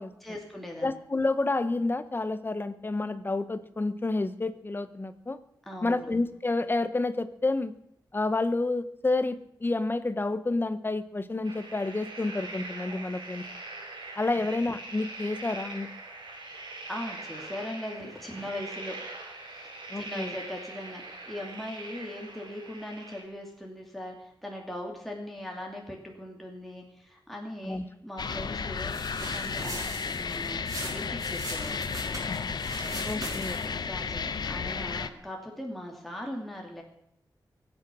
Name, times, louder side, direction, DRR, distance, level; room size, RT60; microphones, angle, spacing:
voice 1, 0.2-0.9 5.7-6.0 14.3-14.5 16.9-19.0 19.5-31.8 33.5-36.8, left 1 dB, ahead, 0 dB, 2.7 m, -40 dB
voice 2, 0.8-5.4 5.8-7.7 8.1-13.4 14.2-15.9 19.9-20.3 27.6-27.8 33.0-33.6, left 2 dB, 25° left, 12 dB, 1.0 m, -29 dB
sound 1, 11.4-23.2, right 2 dB, 75° right, 4.4 m, -42 dB
sound 2, 28.2-35.1, left 5 dB, 60° left, 0.9 m, -33 dB
sound 3, 28.8-33.8, right 2 dB, 45° right, 5.4 m, -40 dB
23.5 x 8.9 x 6.3 m, 0.76 s
wide cardioid pair, 120°, 8 cm